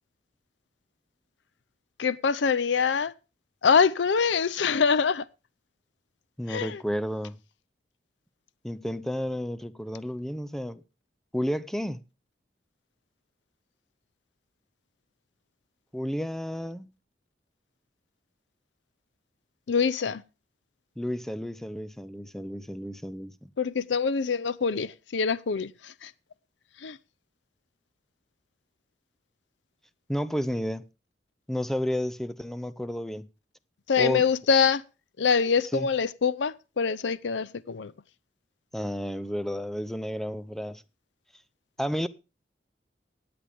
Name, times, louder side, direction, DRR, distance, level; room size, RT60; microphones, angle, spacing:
voice 1, 2.0-3.1 3.6-5.3 6.5-6.8 19.7-20.2 23.6-26.1 26.8-27.0 33.9-34.8 35.2-37.9, left 5 dB, 90° left, 0.5 m, -25 dB
voice 2, 6.4-7.4 8.6-10.8 11.3-12.0 15.9-16.9 21.0-23.5 30.1-30.8 31.5-33.3 34.0-34.2 35.7-35.9 38.7-40.8 41.8-42.1, equal, ahead, 0.5 m, -31 dB
16.0 x 8.7 x 3.5 m
head